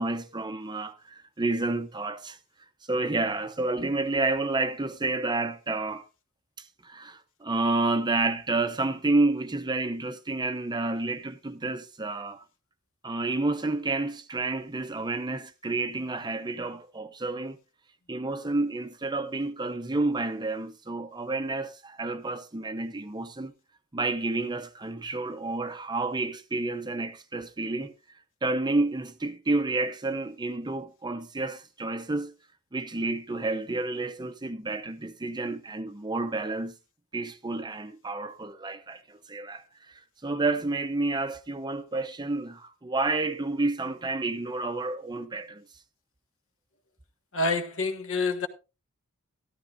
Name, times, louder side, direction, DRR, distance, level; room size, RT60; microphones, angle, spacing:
voice 1, 0.0-2.4 2.9-6.1 6.6-12.4 13.0-17.6 18.1-23.5 23.9-27.9 28.4-32.3 32.7-36.7 37.1-45.6, right 2 dB, 20° right, 0.7 m, -30 dB
voice 2, 47.3-48.5, left 3 dB, 65° left, 1.5 m, -27 dB
13.5 x 13.0 x 2.5 m
head